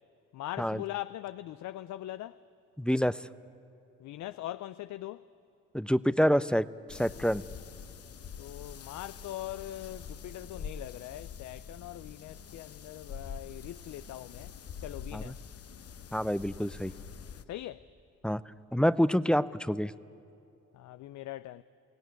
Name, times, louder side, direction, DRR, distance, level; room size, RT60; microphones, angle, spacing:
voice 1, 0.3-2.4 4.0-5.3 8.4-14.5 14.8-15.5 17.5-17.9 20.7-21.6, left 14 dB, 75° left, 0.5 m, -41 dB
voice 2, 2.8-3.2 5.7-7.4 15.1-15.3 16.1-16.9 18.2-18.4 18.7-19.9, equal, 5° left, 0.5 m, -27 dB
sound 1, 6.9-17.4, left 6 dB, 55° left, 1.0 m, -45 dB
22.5 x 17.0 x 9.4 m
cardioid pair, 70°, 29 cm